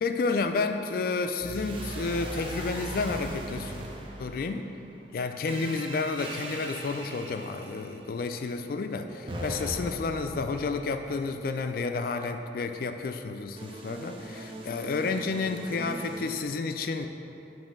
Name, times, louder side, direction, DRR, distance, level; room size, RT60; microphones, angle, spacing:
voice 1, 0.0-3.8 4.2-4.6 5.1-17.1, left 4 dB, 55° left, 7 dB, 0.3 m, -31 dB
sound 1, 1.4-4.7 5.5-8.0 9.3-11.4 13.6-16.4, right 1 dB, 30° right, 0.5 m, -39 dB
7.0 x 3.1 x 5.2 m, 2.8 s
head